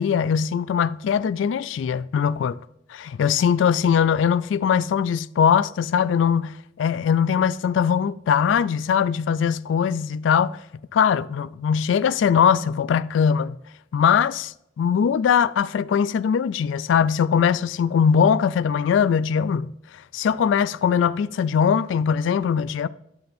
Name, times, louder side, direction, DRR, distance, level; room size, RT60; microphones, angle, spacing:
voice 1, 0.0-2.6 2.9-10.6 10.9-13.6 13.9-22.9, left 7 dB, 75° left, 0.3 m, -21 dB
9.4 x 6.7 x 2.6 m
head